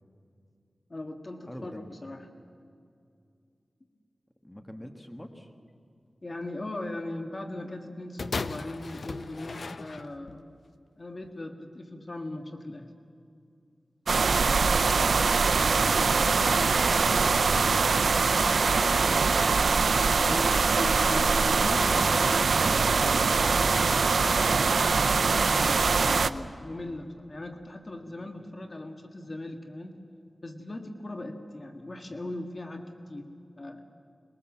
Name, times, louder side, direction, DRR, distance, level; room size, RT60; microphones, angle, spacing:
voice 1, 0.9-2.3 6.2-10.4 11.0-12.9 20.3-29.9 30.4-33.3 33.6-33.8, left 1 dB, 45° left, 5 dB, 1.7 m, -39 dB
voice 2, 1.5-2.0 4.4-5.5 15.5-16.3 16.6-19.3, equal, 15° left, 5 dB, 1.8 m, -45 dB
sound 1, 8.2-10.4 11.2-11.3, left 3 dB, 70° left, 0.7 m, -36 dB
sound 2, 14.1-26.3, right 4 dB, 85° right, 0.6 m, -23 dB
22.0 x 21.5 x 7.3 m, 2.4 s
wide cardioid pair, 65°, 0 cm